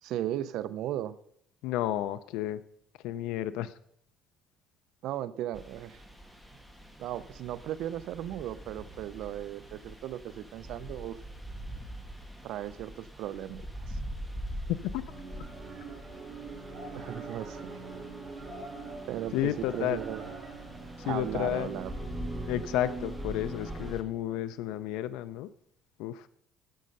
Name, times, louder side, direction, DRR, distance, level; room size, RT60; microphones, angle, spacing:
voice 1, 0.0-1.2 5.0-6.0 7.0-11.2 12.4-14.0 17.0-17.8 19.1-20.2 21.0-21.9, right 12 dB, 70° right, 16 dB, 0.5 m, -36 dB
voice 2, 1.6-2.6 3.0-3.7 14.7-15.0 19.3-20.0 21.0-21.7 22.5-25.5 26.0-26.3, left 13 dB, 85° left, 14 dB, 0.4 m, -31 dB
sound 1, 5.5-24.0, equal, ahead, 1.5 m, -44 dB
sound 2, 15.1-23.9, right 3 dB, 25° right, 3.7 m, -42 dB
10.0 x 7.5 x 5.3 m, 0.70 s
cardioid pair, 135°, 0 cm